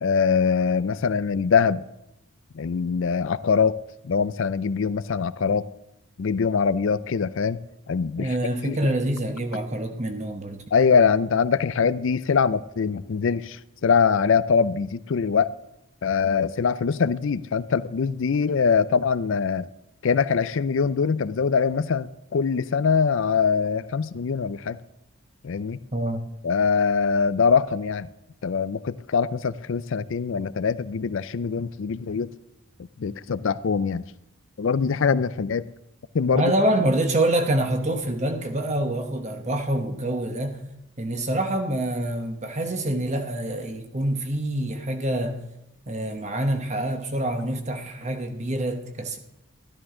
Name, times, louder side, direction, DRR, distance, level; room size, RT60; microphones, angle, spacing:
voice 1, 0.0-1.8 2.5-3.8 4.0-5.7 6.2-7.6 7.9-8.4 8.6-8.8 10.7-15.5 16.0-19.7 20.0-24.8 25.4-25.8 26.4-28.1 28.4-32.3 33.0-34.0 34.6-35.7 36.1-36.5, left 5 dB, 60° left, 0.4 m, -23 dB
voice 2, 8.2-10.6 25.9-26.2 36.3-40.6 41.0-45.4 45.9-49.2, right 1 dB, 30° right, 1.0 m, -26 dB
12.5 x 12.0 x 3.7 m
head